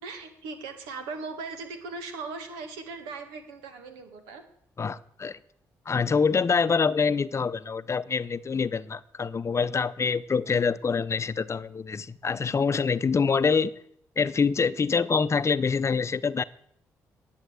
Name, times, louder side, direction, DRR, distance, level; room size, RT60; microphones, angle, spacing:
voice 1, 0.0-4.4, right 4 dB, 90° right, 6 dB, 1.8 m, -38 dB
voice 2, 4.8-5.4 5.9-13.7 14.2-16.4, left 5 dB, 40° left, 16 dB, 0.7 m, -25 dB
11.0 x 8.2 x 8.1 m, 0.69 s
supercardioid pair, 50°, 7 cm